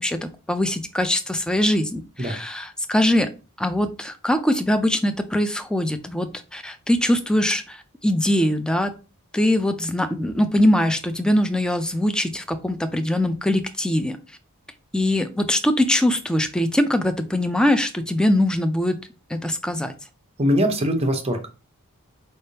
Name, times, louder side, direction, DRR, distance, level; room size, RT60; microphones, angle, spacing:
voice 1, 0.0-3.3 3.6-8.9 9.3-14.2 14.9-19.0 19.3-19.9, left 1 dB, 5° left, 9 dB, 0.3 m, -22 dB
voice 2, 20.4-21.5, equal, 25° right, 5 dB, 0.7 m, -22 dB
4.3 x 3.4 x 2.7 m, 0.32 s
head